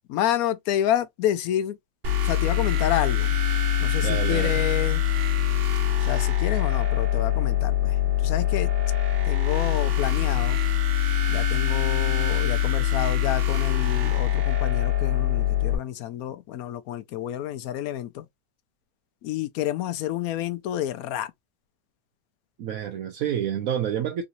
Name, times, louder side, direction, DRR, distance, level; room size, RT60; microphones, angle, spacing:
voice 1, 0.1-1.8 2.2-3.3 3.8-5.0 6.0-8.7 9.2-10.6 11.3-18.3 19.2-21.3, left 11 dB, 85° left, 1.0 m, -29 dB
sound 1, 2.0-15.8, left 10 dB, 50° right, 0.9 m, -23 dB
voice 2, 4.0-4.6 22.6-24.2, right 9 dB, 80° right, 1.1 m, -28 dB
3.8 x 2.7 x 2.5 m
omnidirectional pair, 1.5 m